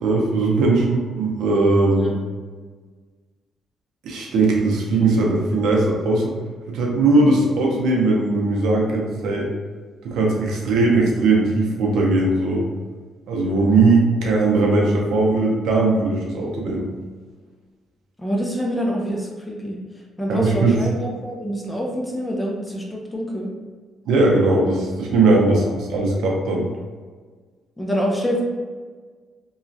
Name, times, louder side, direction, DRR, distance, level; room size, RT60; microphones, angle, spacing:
voice 1, 0.0-2.1 4.0-6.3 6.7-9.5 10.0-12.7 13.3-16.8 20.3-20.8 24.1-26.7, right 2 dB, 80° right, -1 dB, 0.6 m, -19 dB
voice 2, 18.2-19.8 20.2-23.5 25.4-25.7 27.8-28.4, equal, 10° left, -1 dB, 0.6 m, -26 dB
3.0 x 2.3 x 2.7 m, 1.5 s
cardioid pair, 90°, 0 cm